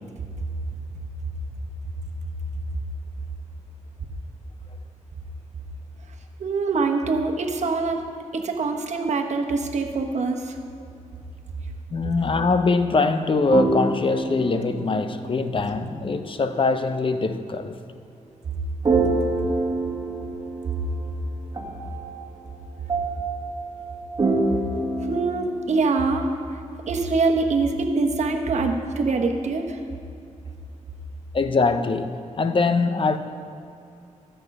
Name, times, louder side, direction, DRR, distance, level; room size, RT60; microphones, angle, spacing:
voice 1, 6.4-8.0 8.3-10.6 25.0-26.6 26.9-29.8, right 3 dB, 65° right, 1.1 m, -24 dB
voice 2, 11.9-17.8 31.3-33.2, left 3 dB, 40° left, 0.7 m, -23 dB
sound 1, 13.5-15.8 18.8-21.1 21.5-25.8, right 2 dB, 30° right, 1.7 m, -27 dB
13.0 x 7.8 x 5.4 m
cardioid pair, 90°, 13 cm